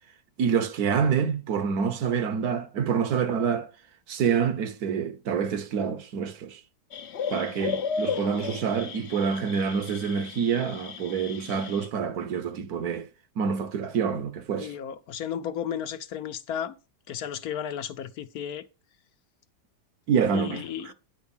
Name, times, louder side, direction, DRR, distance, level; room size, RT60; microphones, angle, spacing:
voice 1, 0.4-3.7 4.1-6.6 7.3-13.1 13.4-14.7 20.1-20.9, right 6 dB, 65° right, 1.3 m, -27 dB
sound 1, 6.9-11.9, left 6 dB, 50° left, 0.9 m, -34 dB
voice 2, 14.6-16.7 17.1-18.6 20.3-20.9, left 9 dB, 70° left, 1.2 m, -34 dB
9.8 x 4.6 x 7.1 m
omnidirectional pair, 1.8 m